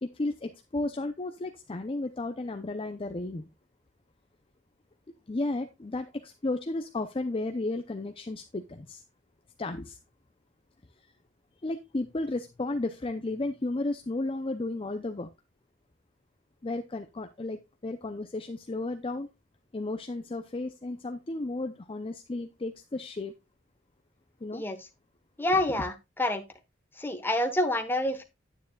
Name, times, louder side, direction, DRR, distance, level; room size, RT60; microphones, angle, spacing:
voice 1, 0.0-3.5 5.3-9.0 9.6-10.0 11.6-15.3 16.6-19.3 19.7-23.3 24.4-24.6, left 2 dB, 30° left, 0.6 m, -33 dB
voice 2, 25.4-26.4 27.0-28.2, left 1 dB, 10° left, 1.3 m, -27 dB
9.4 x 9.0 x 2.3 m
head